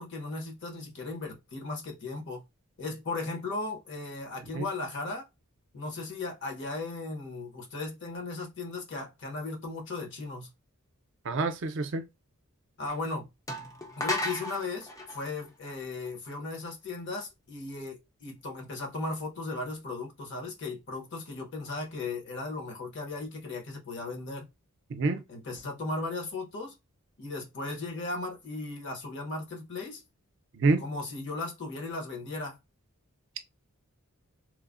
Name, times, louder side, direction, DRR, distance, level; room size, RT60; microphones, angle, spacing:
voice 1, 0.0-2.4 2.8-5.3 5.7-10.5 12.8-13.3 14.0-24.5 25.3-26.7 27.2-30.0 30.8-32.6, left 3 dB, 55° left, 0.9 m, -36 dB
voice 2, 11.2-12.0 24.9-25.2 30.5-30.8, right 3 dB, 55° right, 0.5 m, -27 dB
sound 1, 12.9-13.0 13.5-16.3, left 1 dB, 15° left, 0.4 m, -35 dB
3.1 x 2.0 x 2.4 m
head